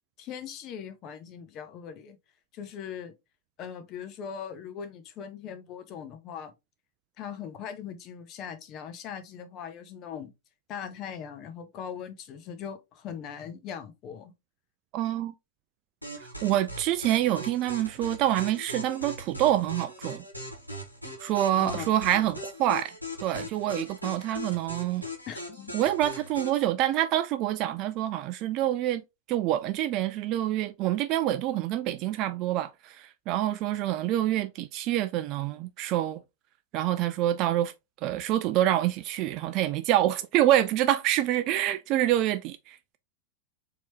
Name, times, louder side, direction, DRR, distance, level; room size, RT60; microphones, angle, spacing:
voice 1, 0.2-2.2 2.5-3.1 3.6-6.5 7.2-10.3 10.7-14.3 21.6-22.2 25.3-25.7, left 8 dB, 35° left, 0.8 m, -40 dB
voice 2, 14.9-15.3 16.4-20.2 21.2-22.9 23.2-25.0 25.7-29.0 29.3-36.2 36.7-37.7 38.0-43.0, right 13 dB, 40° right, 0.3 m, -26 dB
sound 1, 16.0-26.6, equal, 90° left, 1.2 m, -40 dB
4.4 x 2.9 x 2.9 m
figure-of-eight pair, 90°, 0 cm